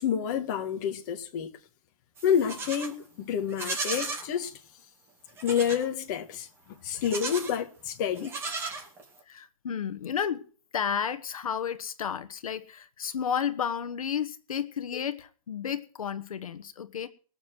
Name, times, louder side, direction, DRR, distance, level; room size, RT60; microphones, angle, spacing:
voice 1, 0.0-1.5 2.2-4.5 5.4-6.5 6.8-8.3, left 8 dB, 30° left, 1.7 m, -28 dB
Livestock farm animals working animals, 2.2-2.9 3.5-4.3 5.4-5.9 6.9-7.6 8.1-9.2, right 3 dB, 15° right, 2.1 m, -35 dB
voice 2, 9.3-10.5 10.7-17.1, left 8 dB, 75° left, 1.3 m, -32 dB
21.5 x 7.2 x 6.2 m
hypercardioid pair, 160°, 18 cm